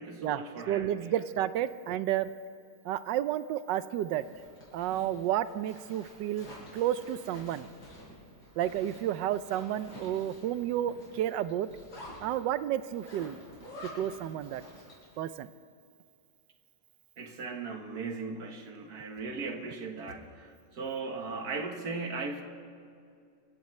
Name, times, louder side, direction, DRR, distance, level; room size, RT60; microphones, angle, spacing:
voice 1, 0.0-1.1 17.2-22.4, right 4 dB, 60° right, 4 dB, 1.8 m, -38 dB
voice 2, 0.7-2.3 2.8-4.2 4.7-6.5 6.7-7.7 8.6-11.7 12.2-13.4 13.8-14.6 15.2-15.5, right 11 dB, 80° right, 14 dB, 1.2 m, -31 dB
Zipper (clothing), 4.0-15.2, left 1 dB, 70° left, 6.0 m, -49 dB
26.5 x 16.0 x 3.2 m, 2.4 s
omnidirectional pair, 1.9 m